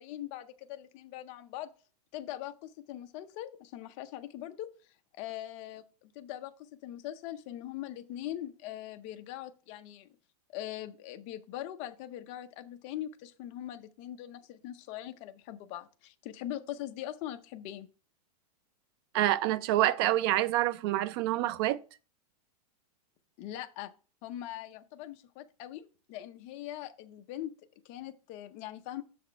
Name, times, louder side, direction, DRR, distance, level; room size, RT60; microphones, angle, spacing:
voice 1, 0.0-1.7 2.1-4.7 5.1-10.2 10.5-17.9 23.4-23.9 24.2-27.6 27.8-29.0, left 12 dB, 35° left, 0.6 m, -41 dB
voice 2, 19.1-21.8, right 14 dB, 40° right, 0.4 m, -27 dB
6.5 x 4.2 x 4.6 m
supercardioid pair, 155°, 20 cm